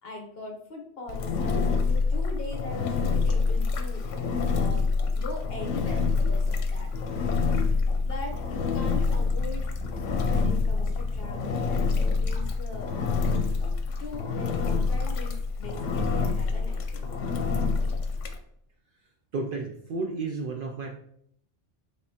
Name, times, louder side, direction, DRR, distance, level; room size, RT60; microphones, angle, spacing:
voice 1, 0.0-7.5 8.0-9.7 10.1-12.9 14.0-17.1, left 2 dB, 55° left, 2 dB, 1.1 m, -41 dB
Engine, 1.1-18.4, left 4 dB, 85° left, 1.0 m, -26 dB
sound 1, 5.3-12.5, equal, 20° left, 1.2 m, -44 dB
voice 2, 19.3-21.0, right 3 dB, 60° right, 3 dB, 0.6 m, -32 dB
5.1 x 3.4 x 2.8 m, 0.70 s
omnidirectional pair, 1.2 m